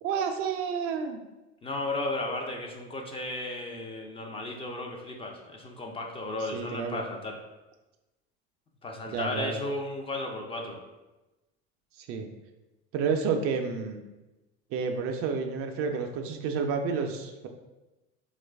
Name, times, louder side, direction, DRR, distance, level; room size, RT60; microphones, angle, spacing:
voice 1, 0.0-1.2 6.4-7.0 9.1-9.6 12.0-12.3 12.9-14.0 14.7-17.5, right 5 dB, 45° right, 5 dB, 0.4 m, -30 dB
voice 2, 1.6-7.4 8.8-10.8, left 2 dB, 20° left, 1 dB, 0.4 m, -34 dB
3.0 x 2.3 x 3.3 m, 1.1 s
hypercardioid pair, 90°, 32 cm